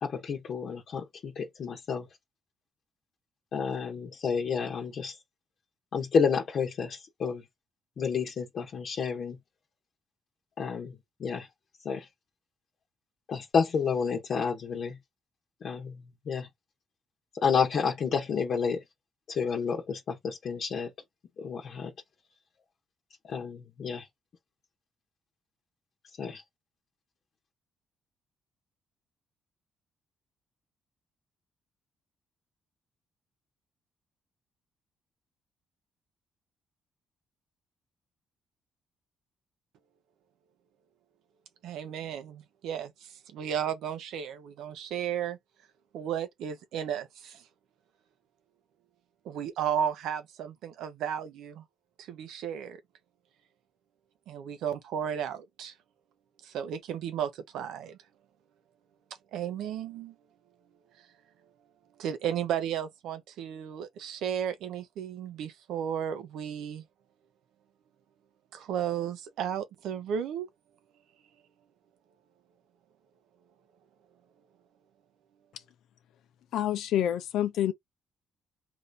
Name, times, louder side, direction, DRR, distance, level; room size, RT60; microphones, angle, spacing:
voice 1, 0.0-2.1 3.5-5.2 5.9-7.4 8.0-9.4 10.6-10.9 11.2-11.5 11.8-12.0 13.3-15.0 15.6-16.5 17.4-18.8 19.3-20.9 21.4-21.9 23.3-24.0 26.2-26.4, left 6 dB, 60° left, 0.9 m, -30 dB
voice 2, 41.6-45.4 45.9-47.4 49.2-51.6 52.1-52.8 54.3-55.7 56.4-58.0 59.3-60.1 62.0-66.8 68.5-70.5, right 9 dB, 85° right, 0.7 m, -34 dB
voice 3, 76.5-77.7, left 11 dB, 85° left, 0.6 m, -28 dB
2.7 x 2.7 x 3.3 m
cardioid pair, 90°, 0 cm